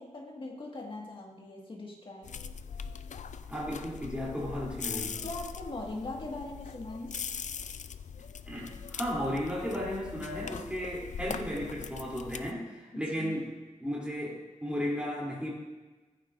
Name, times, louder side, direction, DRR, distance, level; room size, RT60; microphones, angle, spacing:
voice 1, 0.0-2.4 5.2-7.2 12.9-13.4, left 2 dB, 40° left, -1 dB, 1.8 m, -41 dB
sound 1, 2.2-12.5, left 6 dB, 70° left, 0.4 m, -41 dB
voice 2, 3.5-5.2 8.5-13.5 13.8-15.5, equal, 10° right, -5 dB, 3.2 m, -34 dB
14.5 x 9.1 x 2.6 m, 1.2 s
wide cardioid pair, 130°, 13 cm